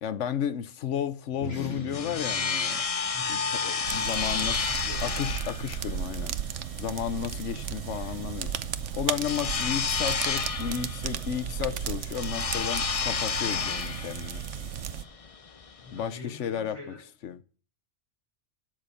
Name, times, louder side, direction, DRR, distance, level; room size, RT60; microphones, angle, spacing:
voice 1, 0.0-2.9 3.3-4.6 5.0-6.3 6.8-8.5 8.9-14.4 15.9-16.9 17.2-17.4, left 9 dB, 80° left, 1.1 m, -33 dB
sound 1, 1.3-6.1, left 2 dB, 60° left, 2.0 m, -43 dB
sound 2, 1.6-16.1, left 5 dB, 35° left, 0.7 m, -31 dB
voice 2, 3.1-3.5 4.1-5.0 15.8-17.0, left 2 dB, 25° right, 6.4 m, -44 dB
sound 3, 3.8-15.0, right 9 dB, 85° right, 1.1 m, -34 dB
12.5 x 6.4 x 8.3 m
omnidirectional pair, 1.2 m